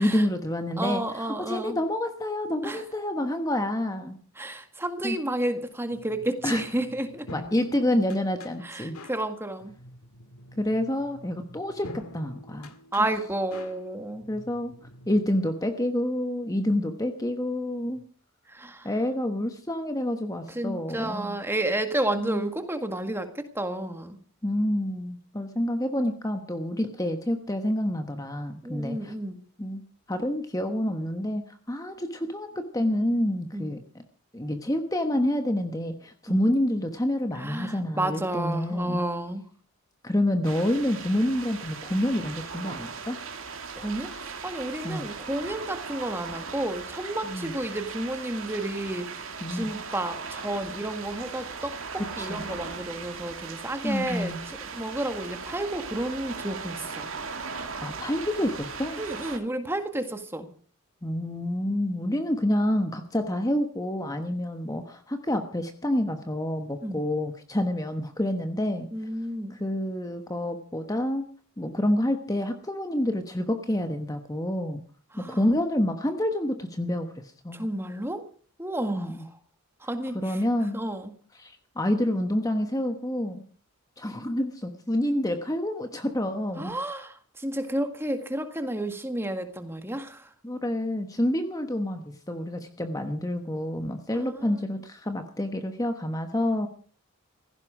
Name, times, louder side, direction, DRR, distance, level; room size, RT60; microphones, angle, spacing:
voice 1, 0.0-4.2 5.0-5.2 6.4-6.6 7.3-9.0 10.6-12.7 14.3-14.8 15.1-18.0 18.8-21.4 22.2-22.5 24.4-29.1 29.6-29.8 30.1-34.0 34.3-39.0 40.0-43.2 44.8-45.0 47.2-47.5 49.4-49.7 52.2-52.4 53.8-54.4 57.8-59.0 61.0-68.9 69.5-71.3 71.6-74.8 75.2-77.7 78.9-79.2 80.1-80.8 81.4-83.4 84.0-86.7 90.4-96.7, left 1 dB, 15° left, 7 dB, 1.2 m, -28 dB
voice 2, 0.8-1.8 2.6-2.8 4.4-7.3 8.6-9.7 12.9-14.3 18.5-18.9 20.5-24.2 28.6-29.4 33.5-33.7 36.3-36.4 37.3-39.5 43.8-57.1 59.0-60.5 66.8-67.0 68.9-69.6 75.1-75.4 77.5-78.2 78.6-79.2 79.8-80.4 80.7-81.1 86.6-90.3 94.1-94.6, right 1 dB, 10° right, 8 dB, 1.7 m, -31 dB
sound 1, 5.9-15.2, left 1 dB, 80° left, 2.1 m, -47 dB
sound 2, 40.4-59.4, right 5 dB, 60° right, 2.7 m, -38 dB
16.5 x 16.0 x 5.0 m, 0.43 s
head